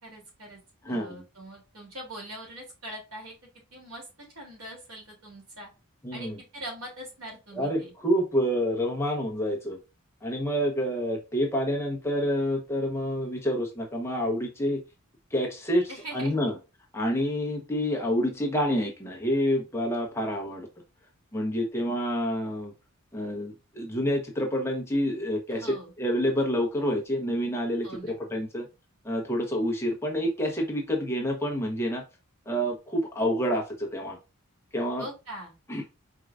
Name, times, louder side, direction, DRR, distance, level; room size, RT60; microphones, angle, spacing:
voice 1, 0.0-0.6 0.9-3.3 3.7-4.1 4.3-5.7 6.1-7.9 15.9-16.3 25.5-25.9 27.8-28.1 35.0-35.5, right 1 dB, 85° right, -1 dB, 3.1 m, -42 dB
voice 2, 6.0-6.3 7.5-9.8 10.2-14.8 15.3-16.5 16.9-20.7 21.3-22.7 23.1-28.7 29.0-32.0 32.5-34.2 34.7-35.0 35.7-35.8, equal, 10° left, 1 dB, 1.0 m, -28 dB
4.6 x 4.6 x 2.5 m, 0.28 s
head